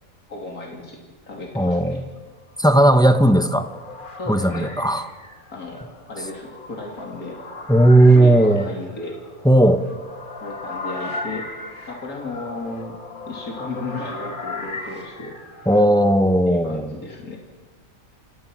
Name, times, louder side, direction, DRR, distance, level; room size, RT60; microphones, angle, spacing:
voice 1, 0.3-2.0 4.2-4.7 5.5-5.8 6.1-7.4 8.1-9.2 10.4-11.5 11.9-13.0 13.3-15.3 16.5-17.4, left 2 dB, 90° left, 0 dB, 3.5 m, -34 dB
voice 2, 1.5-2.0 2.6-3.7 4.3-5.1 7.7-8.6 9.4-9.8 15.7-16.9, right 1 dB, 5° left, 9 dB, 0.9 m, -15 dB
sound 1, 2.4-15.9, left 2 dB, 35° left, 2.0 m, -37 dB
29.0 x 17.5 x 6.2 m, 1.4 s
omnidirectional pair, 1.5 m